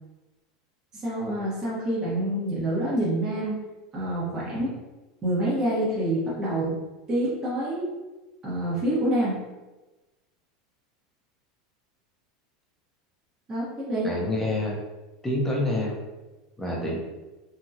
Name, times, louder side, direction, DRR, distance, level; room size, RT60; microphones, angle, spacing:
voice 1, 1.0-3.6 3.9-4.7 5.2-6.7 7.1-7.9 8.4-9.4 13.5-14.1, right 1 dB, 30° right, -8 dB, 1.3 m, -27 dB
voice 2, 14.0-14.8 15.2-16.0 16.6-17.0, left 1 dB, 10° left, -3 dB, 0.8 m, -27 dB
2.8 x 2.7 x 2.4 m, 1.1 s
hypercardioid pair, 105°, 2 cm